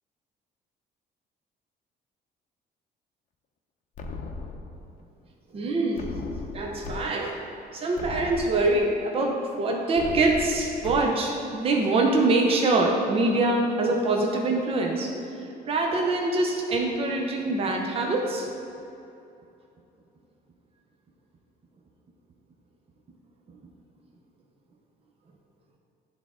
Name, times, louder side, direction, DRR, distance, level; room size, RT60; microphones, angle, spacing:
sound 1, 4.0-5.0 6.0-7.0 7.4-7.5 7.9-9.0 10.0-11.0, left 3 dB, 50° left, 0.6 m, -37 dB
voice 1, 5.5-6.2 6.5-7.4 7.7-15.1 15.4-18.5, right 2 dB, 35° right, 0 dB, 0.7 m, -24 dB
9.9 x 3.6 x 3.7 m, 2.7 s
cardioid pair, 110°, 17 cm